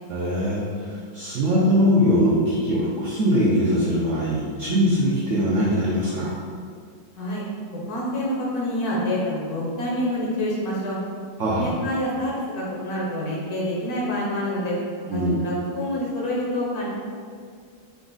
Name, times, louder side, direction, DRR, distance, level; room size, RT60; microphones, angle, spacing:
voice 1, 0.1-6.3 11.4-11.7 15.1-15.4, equal, 75° right, -6 dB, 0.7 m, -22 dB
voice 2, 7.9-11.0 11.6-14.8 15.0-16.9, left 1 dB, 65° left, -5 dB, 1.1 m, -27 dB
3.9 x 2.4 x 3.8 m, 2.1 s
omnidirectional pair, 2.0 m